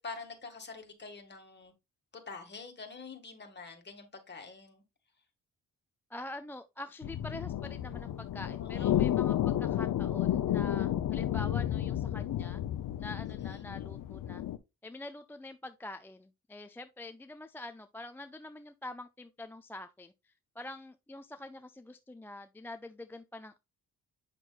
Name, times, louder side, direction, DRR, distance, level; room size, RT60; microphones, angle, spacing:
voice 1, 0.0-1.7 2.1-4.8 8.6-9.1 13.4-13.7, left 4 dB, 30° left, 2.0 m, -46 dB
voice 2, 6.1-12.6 13.0-14.4 14.8-23.6, left 1 dB, 5° left, 0.3 m, -45 dB
sound 1, 7.0-14.6, left 11 dB, 65° left, 0.7 m, -32 dB
8.2 x 6.0 x 2.4 m
cardioid pair, 120°, 35 cm